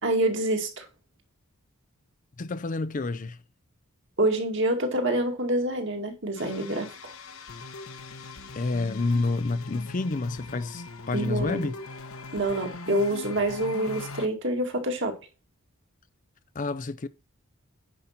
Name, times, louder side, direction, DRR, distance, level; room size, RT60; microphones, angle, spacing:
voice 1, 0.0-0.9 4.2-7.1 11.1-11.7 12.3-15.2, right 1 dB, 55° right, 2.2 m, -27 dB
voice 2, 2.4-3.4 8.5-11.8 16.5-17.1, left 3 dB, 35° left, 0.5 m, -29 dB
sound 1, 6.4-14.3, left 3 dB, 70° left, 1.2 m, -41 dB
9.8 x 5.4 x 5.8 m
head